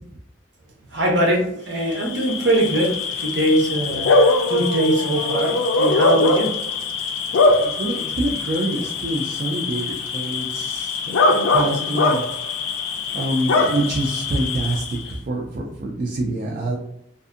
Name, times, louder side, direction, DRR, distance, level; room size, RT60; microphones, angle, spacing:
voice 1, 0.9-6.6, right 1 dB, 60° right, 1 dB, 0.7 m, -22 dB
Bark / Cricket, 1.8-15.1, left 3 dB, 90° left, 0.4 m, -22 dB
voice 2, 7.6-11.2 11.5-12.2 13.1-16.8, right 1 dB, 45° right, -2 dB, 0.3 m, -26 dB
2.6 x 2.5 x 2.4 m, 0.77 s
head